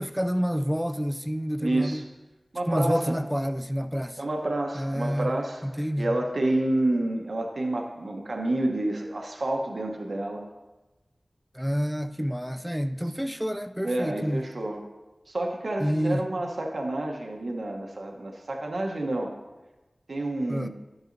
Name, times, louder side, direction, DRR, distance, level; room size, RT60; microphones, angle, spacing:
voice 1, 0.0-2.1 2.7-4.2 4.7-5.4 5.6-6.1 11.5-14.5 15.8-16.2 20.5-20.7, equal, 5° right, 0.3 m, -28 dB
voice 2, 1.6-2.0 2.5-3.1 4.2-5.6 6.0-10.4 13.8-14.8 15.3-19.3 20.1-20.7, right 1 dB, 75° right, 0.9 m, -29 dB
11.5 x 8.0 x 2.6 m
wide cardioid pair, 45°, 0 cm